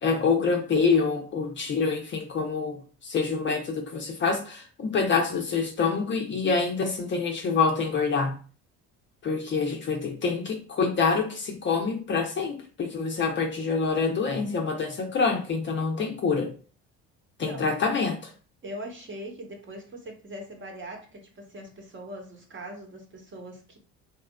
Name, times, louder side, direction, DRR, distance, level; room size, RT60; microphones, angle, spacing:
voice 1, 0.0-8.4 9.2-16.5 17.4-18.3, left 4 dB, 35° left, 0.5 m, -26 dB
voice 2, 18.6-23.8, equal, 35° right, 1.0 m, -41 dB
2.9 x 2.3 x 2.2 m
supercardioid pair, 75°, 35 cm